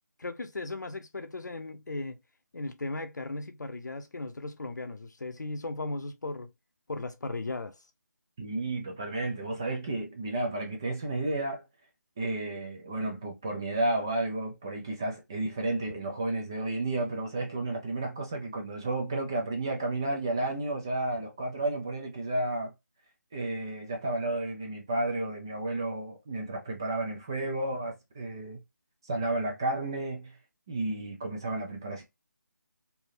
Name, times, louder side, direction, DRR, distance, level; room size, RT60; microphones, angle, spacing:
voice 1, 0.2-2.1 2.5-6.5 6.9-7.8, left 2 dB, 65° left, 0.7 m, -36 dB
voice 2, 8.4-11.6 12.2-22.7 23.3-28.6 29.0-30.4 30.7-32.0, right 2 dB, 15° right, 0.3 m, -32 dB
3.3 x 2.7 x 2.6 m
figure-of-eight pair, 160°, 11 cm